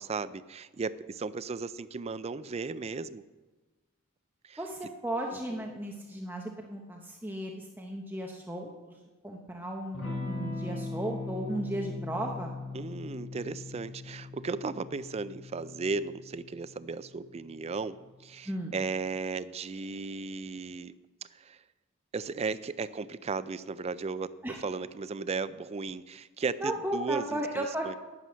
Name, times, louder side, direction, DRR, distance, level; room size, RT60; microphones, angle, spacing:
voice 1, 0.0-3.2 4.4-4.6 12.7-21.0 21.3-21.6 22.1-24.3 24.6-27.9, right 4 dB, 30° right, 15 dB, 0.4 m, -35 dB
voice 2, 4.6-8.7 9.2-12.5 18.4-18.8 24.4-24.6 26.6-28.0, right 1 dB, 10° right, 1 dB, 0.8 m, -35 dB
Electric guitar / Strum, 9.9-18.2, left 3 dB, 85° left, 4.1 m, -40 dB
9.9 x 9.5 x 6.2 m, 1.2 s
head